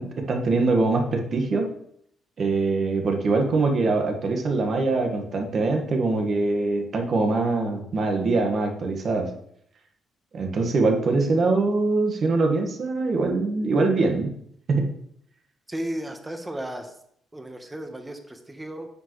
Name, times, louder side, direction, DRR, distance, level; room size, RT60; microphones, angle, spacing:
voice 1, 0.0-1.7 2.4-9.3 10.3-14.3 14.7-14.9, right 3 dB, 50° right, 3 dB, 1.6 m, -23 dB
voice 2, 15.7-17.0 17.3-18.9, right 1 dB, 15° right, 5 dB, 1.3 m, -34 dB
9.3 x 6.4 x 3.2 m, 0.70 s
cardioid pair, 90°, 0 cm